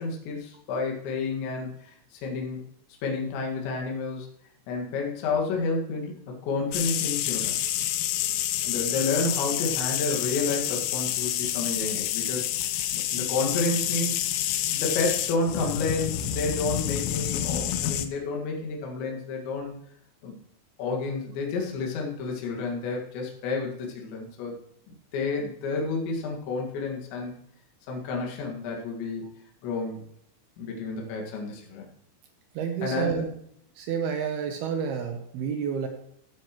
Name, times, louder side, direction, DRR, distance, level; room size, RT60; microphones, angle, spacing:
voice 1, 0.0-2.6 3.0-4.3 4.7-7.6 8.6-12.5 12.9-14.2 14.7-19.7 20.2-20.4 20.8-24.5 24.9-27.4 27.9-29.3 29.6-30.0 30.6-31.9 32.8-33.2, left 3 dB, 70° left, 0 dB, 4.0 m, -30 dB
sound 1, 6.7-18.1, left 12 dB, 85° left, 3.4 m, -28 dB
voice 2, 32.6-33.3 33.8-35.9, right 7 dB, 80° right, 5 dB, 2.3 m, -29 dB
16.0 x 8.0 x 3.1 m, 0.69 s
omnidirectional pair, 5.7 m